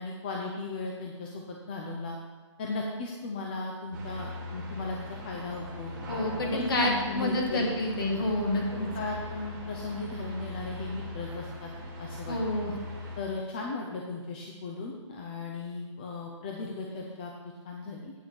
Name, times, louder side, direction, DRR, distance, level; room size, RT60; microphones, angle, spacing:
voice 1, 0.0-2.2 2.6-5.9 6.4-7.7 8.5-11.7 12.0-12.4 13.2-17.3 17.6-18.1, left 3 dB, 20° left, 0 dB, 0.6 m, -36 dB
sound 1, 3.9-13.2, left 1 dB, 15° right, 1.4 m, -40 dB
voice 2, 6.1-8.9 12.3-12.7, left 1 dB, 45° left, 1 dB, 2.0 m, -28 dB
8.6 x 6.5 x 6.1 m, 1.4 s
hypercardioid pair, 175°, 16 cm